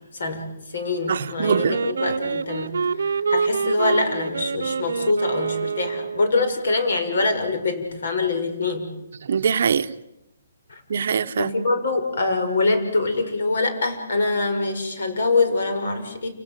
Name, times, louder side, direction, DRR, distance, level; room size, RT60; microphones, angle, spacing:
voice 1, 0.1-0.4 0.7-2.7 3.0-8.9 10.7-10.8 11.4-16.3, left 3 dB, 60° left, 6.4 m, -24 dB
voice 2, 1.1-1.8 9.2-9.9 10.9-11.5, right 7 dB, 50° right, 0.9 m, -22 dB
Wind instrument woodwind instrument, 1.4-6.4, right 5 dB, 80° right, 1.0 m, -26 dB
29.5 x 18.0 x 7.6 m
hypercardioid pair, 175°, 0 cm